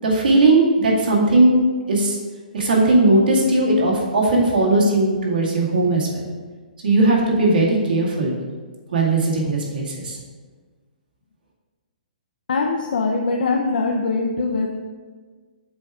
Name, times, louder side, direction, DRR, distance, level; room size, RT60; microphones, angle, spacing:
voice 1, 0.0-1.6 1.9-2.2 2.5-6.2 6.8-8.3 8.9-10.2, right 2 dB, 85° right, -3 dB, 2.0 m, -18 dB
voice 2, 12.5-14.7, left 3 dB, 75° left, 0 dB, 0.6 m, -22 dB
7.6 x 3.6 x 4.8 m, 1.4 s
hypercardioid pair, 170°, 5 cm